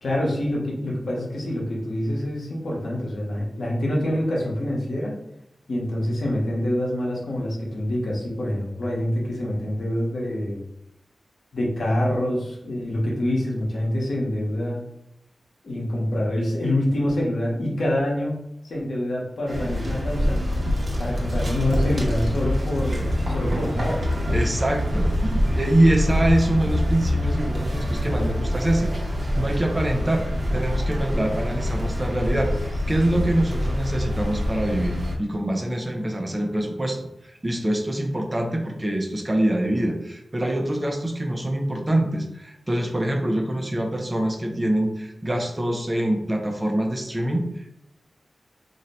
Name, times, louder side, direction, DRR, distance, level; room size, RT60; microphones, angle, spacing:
voice 1, 0.0-5.2 5.7-10.6 11.5-14.8 15.6-20.4 21.0-24.1, left 1 dB, 80° left, -3 dB, 0.8 m, -26 dB
sound 1, 19.5-35.1, left 1 dB, 60° right, 0.7 m, -25 dB
voice 2, 24.3-47.7, right 1 dB, 25° right, 3 dB, 0.5 m, -25 dB
2.6 x 2.1 x 4.0 m, 0.81 s
wide cardioid pair, 80°, 0 cm